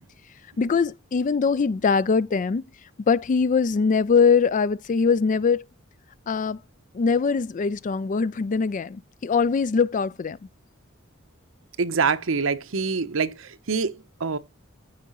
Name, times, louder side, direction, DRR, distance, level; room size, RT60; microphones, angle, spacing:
voice 1, 0.6-2.6 3.1-5.6 6.3-6.6 6.9-10.4, left 5 dB, 40° left, 0.4 m, -22 dB
voice 2, 11.8-14.4, right 5 dB, 75° right, 0.9 m, -25 dB
14.5 x 4.9 x 3.1 m
head